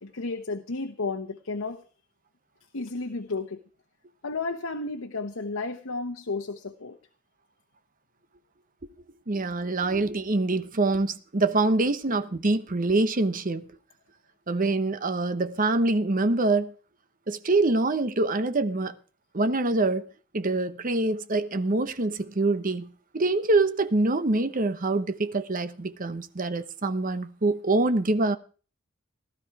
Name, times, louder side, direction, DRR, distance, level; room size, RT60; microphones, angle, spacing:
voice 1, 0.0-1.8 2.7-3.6 4.2-7.0, left 3 dB, 85° left, 1.0 m, -32 dB
voice 2, 9.3-13.7 14.5-16.7 17.3-18.9 19.3-20.1 20.3-22.9 23.1-28.4, right 2 dB, 40° right, 0.9 m, -25 dB
16.0 x 12.5 x 4.7 m
head